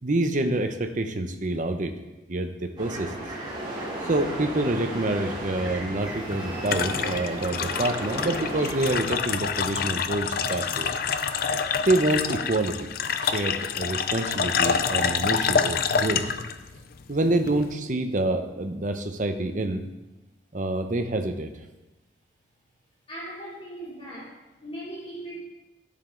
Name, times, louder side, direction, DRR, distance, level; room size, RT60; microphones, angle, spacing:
voice 1, 0.0-1.9 2.3-3.1 4.0-10.9 11.9-12.9 13.2-16.2 17.1-19.9 20.5-21.5, right 2 dB, 45° right, 6 dB, 0.8 m, -27 dB
sound 1, 2.8-9.0, right 1 dB, 25° right, 3.3 m, -34 dB
sound 2, 6.0-17.7, left 6 dB, 55° left, 0.5 m, -27 dB
voice 2, 23.1-25.4, right 1 dB, 30° left, -6 dB, 3.1 m, -39 dB
13.0 x 6.8 x 3.9 m, 1.1 s
head